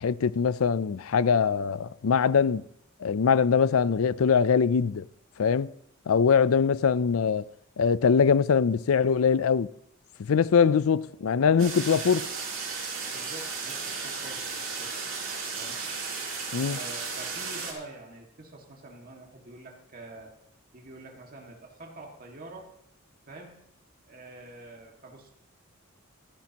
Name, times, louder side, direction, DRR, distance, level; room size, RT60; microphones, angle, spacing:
voice 1, 0.0-2.6 3.0-5.0 5.4-5.7 6.1-7.4 7.8-9.7 10.2-12.3 16.5-16.8, left 6 dB, 85° left, 0.4 m, -22 dB
sound 1, 11.6-17.7, right 5 dB, 70° right, 5.5 m, -34 dB
voice 2, 13.1-14.9 15.5-15.8 16.7-20.3 20.7-22.7 23.3-23.6 24.1-25.3, right 2 dB, 45° right, 1.9 m, -46 dB
27.5 x 10.5 x 2.9 m
head